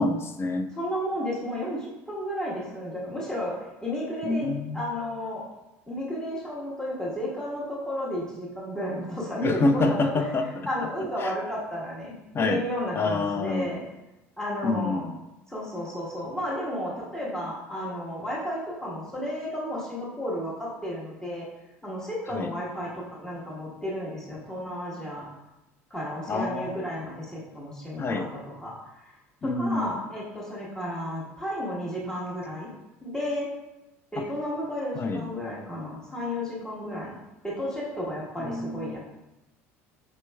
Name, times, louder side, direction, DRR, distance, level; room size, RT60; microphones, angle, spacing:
voice 1, 0.0-0.7 4.2-4.8 9.4-10.7 11.2-11.3 12.3-12.6 13.0-13.8 14.6-15.2 22.3-22.5 26.3-26.8 28.0-28.3 29.4-30.0 34.2-34.3 34.9-35.3 38.4-39.0, left 3 dB, 30° left, 6 dB, 0.5 m, -27 dB
voice 2, 0.8-3.5 3.8-4.5 4.7-5.4 5.9-10.3 10.7-12.1 12.4-13.8 14.4-15.0 15.5-21.5 21.8-25.3 25.9-28.3 28.6-28.9 29.4-32.7 33.0-33.5 34.1-37.2 37.4-39.0, equal, 10° left, -6 dB, 1.3 m, -32 dB
5.3 x 2.9 x 2.2 m, 0.96 s
hypercardioid pair, 75°, 7 cm